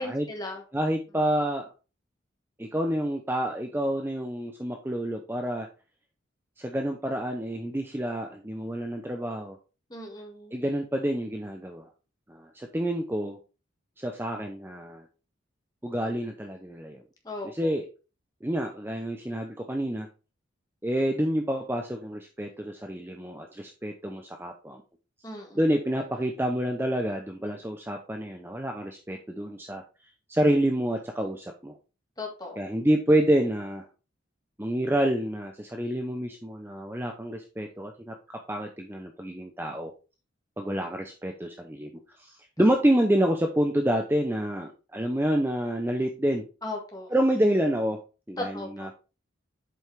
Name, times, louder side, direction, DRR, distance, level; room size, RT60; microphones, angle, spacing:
voice 1, 0.0-0.6 9.9-10.5 17.3-17.7 25.2-25.6 32.2-32.6 42.6-42.7 46.6-47.1 48.4-48.9, left 2 dB, 20° left, 1 dB, 1.8 m, -37 dB
voice 2, 0.7-1.7 2.6-5.7 6.6-9.6 10.5-11.9 12.3-13.4 14.0-15.0 15.8-17.0 17.4-17.9 18.4-20.1 20.8-24.8 25.6-29.8 30.3-31.7 32.6-33.9 34.6-38.1 38.5-39.9 40.6-41.9 42.2-46.4 47.1-48.0 48.3-49.0, right 1 dB, 10° right, 3 dB, 0.6 m, -28 dB
7.6 x 5.3 x 3.3 m, 0.32 s
head